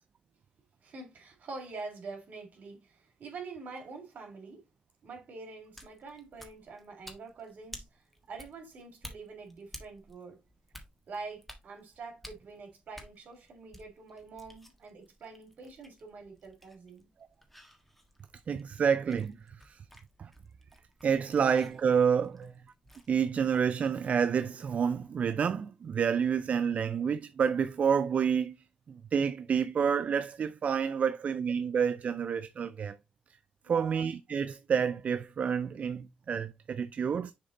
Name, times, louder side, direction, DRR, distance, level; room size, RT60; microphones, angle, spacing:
voice 1, 0.8-4.6 5.0-8.0 8.3-10.4 11.1-17.1 22.4-22.5 33.6-34.1, right 4 dB, 70° right, 3.1 m, -45 dB
sound 1, 5.6-23.2, equal, 5° left, 1.6 m, -54 dB
voice 2, 18.5-19.4 19.7-19.8 20.2-20.3 21.0-22.4 23.1-28.6 28.9-33.0 33.7-37.3, right 7 dB, 55° right, 0.4 m, -29 dB
6.8 x 3.8 x 4.0 m
cardioid pair, 85°, 3 cm